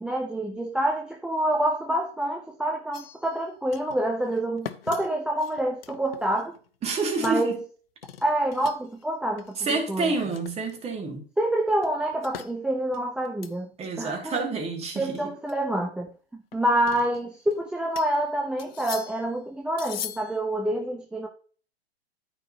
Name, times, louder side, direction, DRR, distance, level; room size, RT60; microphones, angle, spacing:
voice 1, 0.0-6.5 7.2-7.6 8.2-10.1 11.4-13.7 14.0-14.4 15.0-21.3, right 1 dB, 5° right, 0.5 m, -27 dB
sound 1, 2.9-3.4 3.7-4.0 4.3-6.7 6.9-7.5 8.0-9.0 9.4-9.7 10.1-11.0 11.8-12.5 12.9-13.6 14.0-14.1 14.4-14.5 15.1-15.5 16.5-17.6 18.0-18.2 18.6-19.3 19.8-20.4, left 9 dB, 65° left, 0.9 m, -41 dB
voice 2, 6.8-7.6 9.6-11.2 13.8-15.3, right 3 dB, 20° right, 2.4 m, -28 dB
13.5 x 4.7 x 2.9 m
figure-of-eight pair, 105°, 32 cm